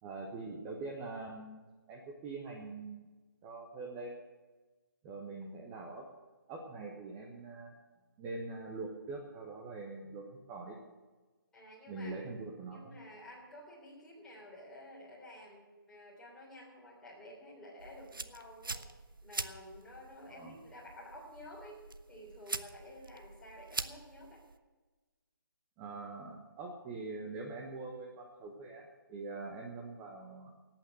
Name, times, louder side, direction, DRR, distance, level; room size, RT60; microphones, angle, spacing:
voice 1, 0.0-3.1 3.4-4.2 5.0-6.0 6.5-7.7 8.2-10.8 11.9-13.0 20.3-20.6 25.8-30.5, right 3 dB, 15° right, -1 dB, 1.1 m, -43 dB
voice 2, 11.5-12.1 12.7-18.9 19.2-21.8 22.1-24.4, left 1 dB, 5° left, -6 dB, 3.4 m, -51 dB
sound 1, 17.8-24.6, right 3 dB, 70° right, 0.8 m, -44 dB
17.0 x 8.9 x 6.7 m, 1.3 s
figure-of-eight pair, 145°, 12 cm